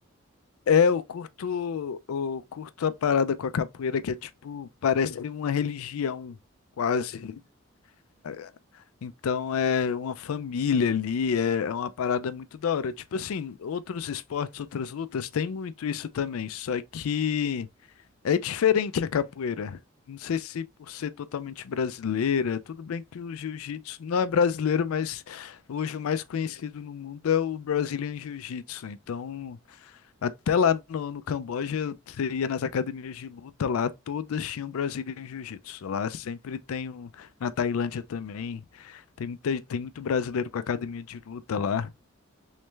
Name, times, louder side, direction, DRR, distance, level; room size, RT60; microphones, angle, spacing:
voice 1, 0.7-6.4 6.8-7.4 8.3-8.5 9.0-17.7 18.2-19.8 20.1-29.9 30.2-41.9, left 7 dB, 85° left, 0.4 m, -29 dB
3.2 x 3.2 x 3.2 m
head